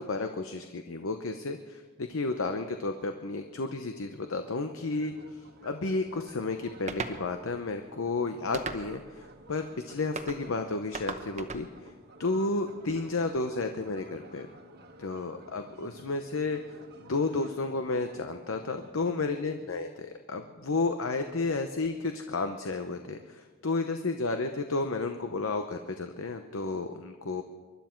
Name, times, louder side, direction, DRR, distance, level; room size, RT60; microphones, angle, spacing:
voice 1, 0.0-11.9 12.2-14.5 15.0-16.6 17.0-27.4, left 3 dB, 65° left, 7 dB, 0.8 m, -32 dB
sound 1, 4.8-18.9, right 2 dB, 50° right, 1.4 m, -53 dB
sound 2, 6.9-7.2 8.5-9.1 10.2-10.4 10.9-11.7, right 4 dB, 35° right, 0.9 m, -36 dB
24.0 x 11.5 x 4.5 m, 1.4 s
head